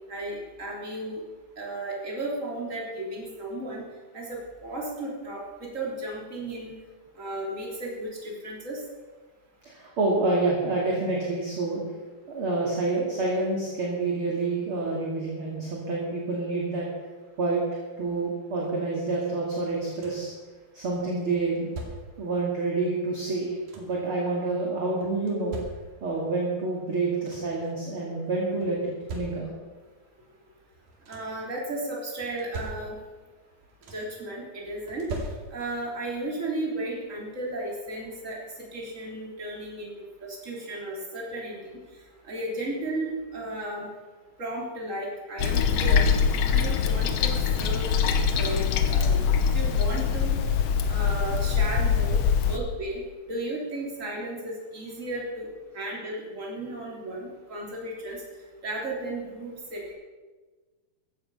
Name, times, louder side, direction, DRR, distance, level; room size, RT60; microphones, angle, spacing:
voice 1, 0.1-1.2 1.6-3.8 4.1-6.7 7.2-8.8 31.1-33.0 33.9-35.1 35.5-38.4 38.7-39.9 40.2-41.7 42.3-43.9 44.4-46.0 46.3-47.9 48.4-49.3 49.5-50.4 50.9-53.0 53.3-55.5 55.7-58.2 58.6-59.9, right 1 dB, 20° right, -2 dB, 3.7 m, -34 dB
voice 2, 9.6-11.8 12.3-16.8 17.4-17.6 18.0-20.3 20.7-21.7 22.2-25.6 26.0-29.5, right 3 dB, 40° right, -3 dB, 2.9 m, -28 dB
sound 1, 19.6-20.4 21.3-22.3 23.2-24.1 25.0-26.2 26.8-26.9 27.1-27.7 28.6-29.8 30.7-31.5 32.2-33.2 33.5-34.2 34.9-35.9 37.2-37.3 37.8-38.0, right 2 dB, 65° right, 3.8 m, -41 dB
Toilet flush, 45.4-52.6, left 6 dB, 80° left, 1.4 m, -23 dB
15.0 x 13.0 x 5.6 m, 1.3 s
omnidirectional pair, 4.2 m